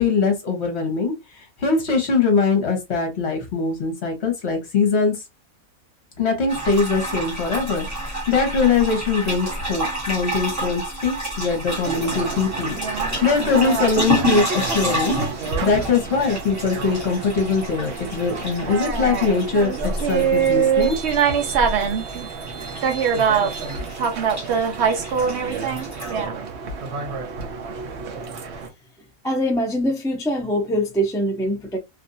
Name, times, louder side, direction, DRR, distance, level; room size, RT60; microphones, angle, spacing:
voice 1, 0.0-5.2 6.2-15.1 15.6-21.0, left 4 dB, 50° left, 1.3 m, -22 dB
sound 1, 6.5-26.3, right 1 dB, 10° right, 1.3 m, -30 dB
sound 2, 11.8-28.7, right 6 dB, 60° right, 0.9 m, -25 dB
voice 2, 29.2-31.8, equal, 5° left, 0.4 m, -23 dB
3.1 x 2.6 x 2.6 m
omnidirectional pair, 1.5 m